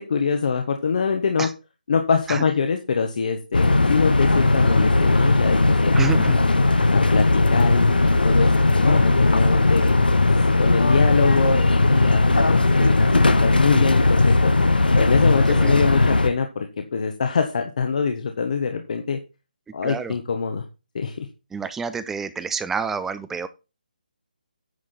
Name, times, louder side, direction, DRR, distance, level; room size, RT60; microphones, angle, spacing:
voice 1, 0.0-1.5 1.9-6.3 6.9-10.3 10.6-14.5 14.9-19.2 19.7-20.6 20.9-21.3, left 5 dB, 55° left, 5 dB, 1.3 m, -24 dB
sound 1, 3.5-16.3, left 2 dB, 80° left, 1.2 m, -18 dB
voice 2, 6.0-6.4 15.5-15.8 19.8-20.1 21.5-23.5, right 5 dB, 5° right, 13 dB, 0.6 m, -29 dB
9.6 x 6.3 x 4.3 m, 0.29 s
figure-of-eight pair, 150°, 5 cm